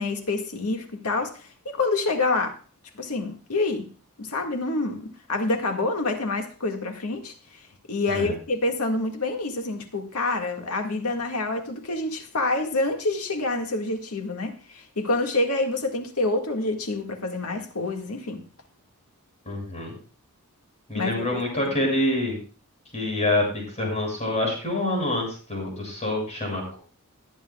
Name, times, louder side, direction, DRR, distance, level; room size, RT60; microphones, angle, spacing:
voice 1, 0.0-2.6 3.0-3.9 4.2-7.3 7.9-18.4 20.9-21.7, left 2 dB, 85° left, 1.9 m, -27 dB
voice 2, 19.4-20.0 20.9-22.4 22.9-26.8, left 1 dB, 30° left, 7.1 m, -26 dB
21.5 x 10.5 x 2.4 m
head